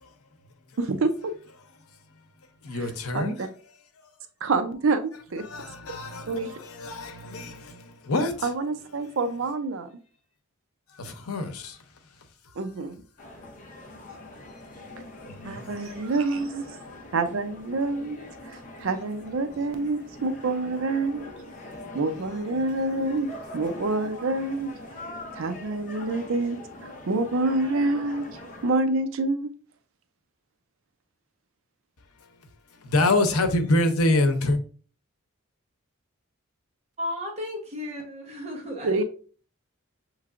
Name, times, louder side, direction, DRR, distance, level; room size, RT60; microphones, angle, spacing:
voice 1, 0.8-1.3 2.7-3.5 4.4-5.4 6.3-6.5 8.4-9.9 12.6-13.0 15.4-16.7 17.1-21.2 21.9-24.7 25.3-28.3 28.6-29.5 38.8-39.0, right 3 dB, 70° right, 0.5 m, -27 dB
voice 2, 2.6-3.4 5.4-8.5 11.0-11.8 15.3-15.7 32.8-34.6, left 2 dB, 90° left, 0.7 m, -26 dB
sound 1, 13.2-28.7, left 1 dB, 35° left, 0.7 m, -43 dB
voice 3, 37.0-39.0, left 1 dB, 30° right, 1.0 m, -34 dB
6.5 x 3.1 x 2.4 m
head